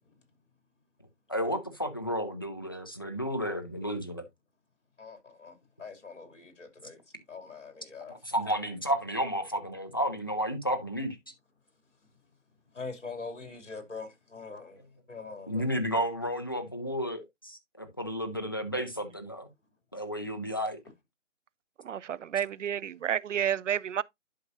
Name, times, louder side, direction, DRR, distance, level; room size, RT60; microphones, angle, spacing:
voice 1, 1.3-4.2 8.1-11.2 15.5-19.5 19.9-20.8, equal, 20° left, 0.5 m, -32 dB
voice 2, 5.0-7.0 7.3-8.2 12.7-14.8 15.1-15.6, left 4 dB, 65° left, 2.8 m, -43 dB
voice 3, 21.9-24.0, right 9 dB, 70° right, 0.5 m, -30 dB
11.0 x 5.1 x 2.6 m
figure-of-eight pair, 155°, 38 cm